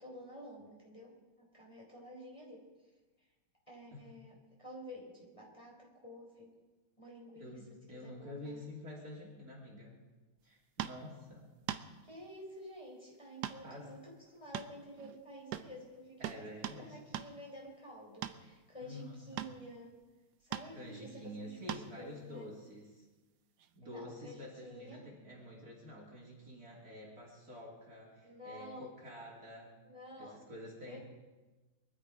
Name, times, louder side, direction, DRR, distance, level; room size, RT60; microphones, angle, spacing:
voice 1, 0.0-2.6 3.7-6.5 7.0-7.6 7.9-8.6 12.0-19.9 20.4-22.5 23.8-25.0 28.2-28.9 29.8-30.4 30.9-31.0, equal, 15° left, -3 dB, 3.8 m, -51 dB
voice 2, 7.4-10.0 10.4-11.5 13.6-14.0 16.2-17.0 18.8-19.5 20.7-23.1 23.7-29.8 30.2-31.0, left 1 dB, 45° right, -3 dB, 3.5 m, -49 dB
sound 1, 10.8-11.0 11.7-11.9 13.4-13.6 13.9-14.0 14.5-15.2 15.5-15.7 16.2-16.8 17.1-17.3 18.2-18.4 19.4-19.6 20.5-20.7 21.7-21.9 23.6-23.7, right 11 dB, 65° right, 1.1 m, -40 dB
22.5 x 12.5 x 4.9 m, 1.2 s
omnidirectional pair, 2.3 m